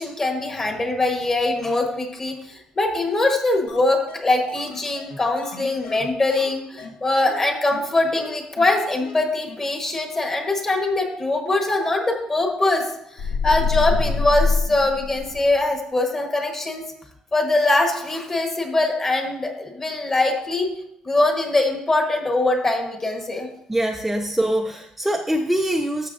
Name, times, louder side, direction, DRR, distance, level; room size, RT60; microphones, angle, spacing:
voice 1, 0.0-12.9 13.1-16.8 17.3-20.7 21.0-23.5, left 2 dB, 25° left, 2 dB, 1.3 m, -22 dB
sound 1, 3.7-3.8 4.1-4.2 4.5-6.5 6.8-6.9 7.2-7.4 7.7-7.8 8.1-8.3 8.6-8.7 9.0-9.1 9.5-9.6 9.9-10.0, left 4 dB, 85° left, 1.4 m, -38 dB
sound 2, 13.2-15.6, left 4 dB, 70° left, 0.6 m, -23 dB
voice 2, 23.7-26.1, right 1 dB, 5° right, 3 dB, 0.4 m, -23 dB
12.5 x 6.8 x 2.6 m, 0.79 s
cardioid pair, 145°, 2 cm